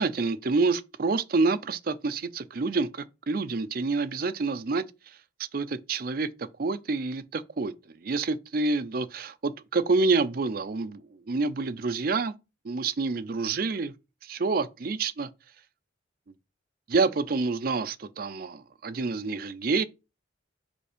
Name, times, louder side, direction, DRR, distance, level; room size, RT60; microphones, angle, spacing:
voice 1, 0.0-5.2 5.5-6.3 6.6-7.7 8.0-12.3 12.6-13.9 14.2-15.3 16.9-19.8, right 3 dB, 50° right, 0.5 m, -28 dB
5.1 x 4.4 x 5.0 m
head